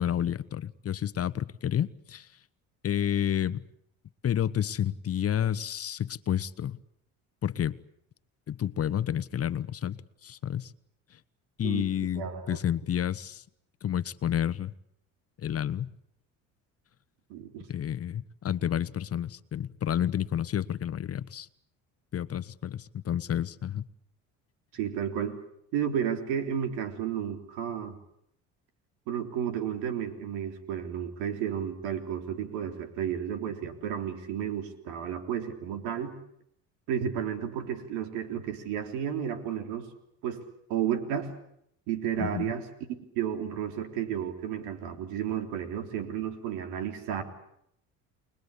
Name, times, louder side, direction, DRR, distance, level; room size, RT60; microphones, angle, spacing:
voice 1, 0.0-2.3 2.8-3.6 4.2-6.8 7.4-7.8 8.5-10.7 11.6-13.4 13.8-14.7 15.4-15.9 17.7-21.5 22.1-23.8 42.2-42.5, left 10 dB, 40° left, 1.1 m, -30 dB
voice 2, 12.2-12.6 17.3-17.7 24.7-25.4 25.7-28.0 29.1-36.1 36.9-39.9 40.2-40.4 40.7-41.3 41.9-42.7 43.2-47.2, right 9 dB, 80° right, 3.7 m, -32 dB
30.0 x 21.5 x 8.4 m
supercardioid pair, 80°, 36 cm